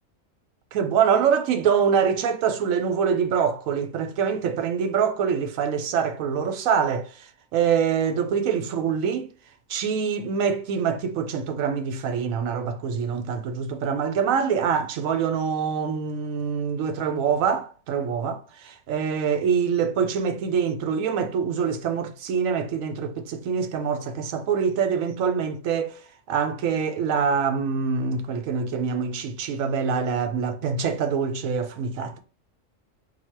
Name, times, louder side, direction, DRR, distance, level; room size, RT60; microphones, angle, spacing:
voice 1, 0.7-9.3 9.7-26.0 26.3-32.2, right 6 dB, 85° right, 1.1 m, -25 dB
3.8 x 2.3 x 4.5 m
omnidirectional pair, 1.4 m